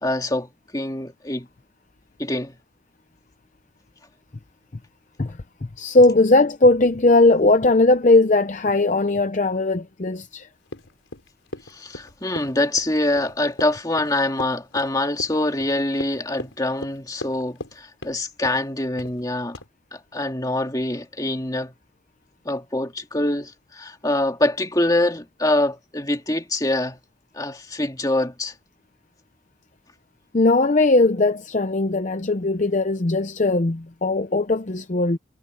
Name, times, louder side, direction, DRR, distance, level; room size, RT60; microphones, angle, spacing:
voice 1, 0.0-1.5 2.2-2.6 11.7-19.6 19.9-21.7 22.5-27.0 27.3-28.5, left 1 dB, 20° left, 2.1 m, -25 dB
voice 2, 5.2-10.5 30.3-35.2, left 2 dB, 40° left, 0.6 m, -19 dB
Run, 10.7-17.8 18.0-18.6 19.0-19.2 19.5-19.7, left 1 dB, 85° left, 5.4 m, -37 dB
head